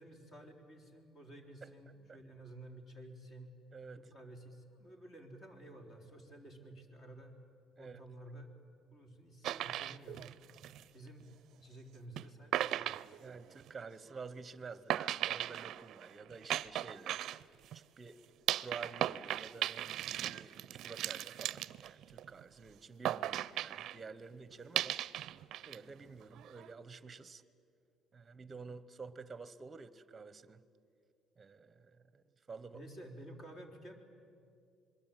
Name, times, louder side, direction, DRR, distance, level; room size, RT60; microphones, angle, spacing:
voice 1, 0.0-3.6 3.9-7.4 7.8-8.5 8.9-10.4 10.9-11.3 11.6-13.0 32.7-33.9, right 1 dB, 40° left, 3 dB, 3.8 m, -52 dB
voice 2, 1.6-2.2 3.7-4.1 7.8-8.0 13.2-17.2 17.7-18.2 18.6-25.0 25.7-27.4 28.1-30.6 31.4-32.8, right 4 dB, 25° right, 16 dB, 1.0 m, -50 dB
sound 1, 9.4-11.2 12.2-12.3 12.5-13.9 14.9-17.8 18.5-22.4 23.0-24.0 24.7-25.8 26.1-26.7, right 12 dB, 60° right, 0.5 m, -37 dB
26.5 x 21.5 x 9.2 m, 2.4 s
cardioid pair, 135°, 0 cm